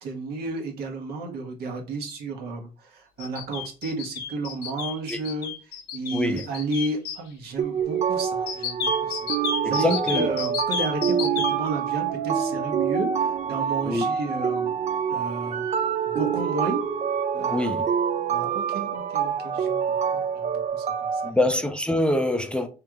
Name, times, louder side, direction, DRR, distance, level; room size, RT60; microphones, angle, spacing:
voice 1, 0.0-5.5 5.9-14.8 15.1-15.6 16.1-16.8 17.3-17.8 18.3-21.4, right 3 dB, 70° right, 1.3 m, -32 dB
sound 1, 3.2-7.2 8.5-11.5, left 6 dB, 80° left, 1.0 m, -31 dB
voice 2, 6.1-6.4 9.6-10.3 13.8-14.1 17.5-17.9 21.2-22.7, left 1 dB, 5° left, 0.5 m, -25 dB
sound 2, 7.6-21.3, right 7 dB, 40° right, 0.5 m, -26 dB
3.2 x 3.2 x 3.7 m
cardioid pair, 110°, 17 cm